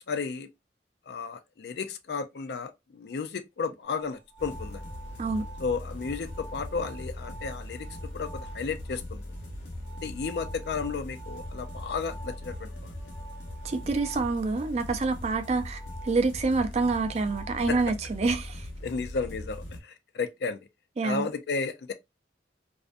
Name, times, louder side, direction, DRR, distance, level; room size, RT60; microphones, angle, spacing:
voice 1, 0.1-0.5 1.1-4.8 5.6-7.9 8.1-9.2 10.0-12.9 17.7-17.8 18.8-20.7 21.0-21.9, left 5 dB, 60° left, 0.4 m, -33 dB
sound 1, 3.8-17.8, right 3 dB, 10° right, 0.7 m, -49 dB
sound 2, 4.4-19.8, left 1 dB, 80° left, 0.8 m, -40 dB
voice 2, 13.6-18.7 21.0-21.3, right 3 dB, 35° right, 0.3 m, -27 dB
2.4 x 2.1 x 2.5 m
head